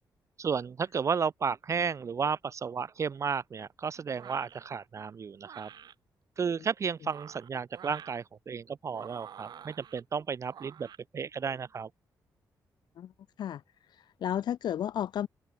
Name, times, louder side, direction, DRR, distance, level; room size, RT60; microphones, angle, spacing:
voice 1, 0.4-5.7 6.4-10.9 11.1-11.9, right 6 dB, 45° right, 0.7 m, -33 dB
sound 1, 4.1-4.6 5.4-5.9 7.0-8.2 8.9-10.0 10.5-11.0, right 9 dB, 70° right, 1.9 m, -48 dB
voice 2, 13.9-15.3, left 10 dB, 75° left, 0.9 m, -33 dB
cardioid pair, 110°, 7 cm